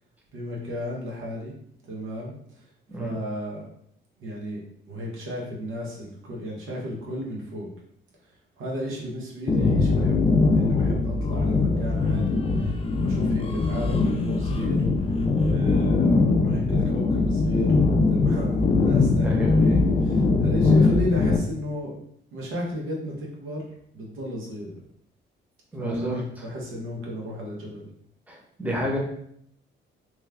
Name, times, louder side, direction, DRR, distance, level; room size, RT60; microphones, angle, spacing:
voice 1, 0.3-1.5 1.9-2.3 3.0-3.7 4.2-7.7 8.6-15.1 15.4-17.7 18.1-21.9 22.3-23.7 23.9-24.7 25.8-27.9, equal, 85° right, -3 dB, 1.0 m, -33 dB
sound 1, 9.5-21.4, left 3 dB, 30° left, 0.4 m, -21 dB
voice 2, 19.2-19.5 25.7-26.4 28.3-29.0, equal, 10° right, -2 dB, 0.9 m, -30 dB
3.1 x 2.2 x 3.5 m, 0.69 s
cardioid pair, 90°, 20 cm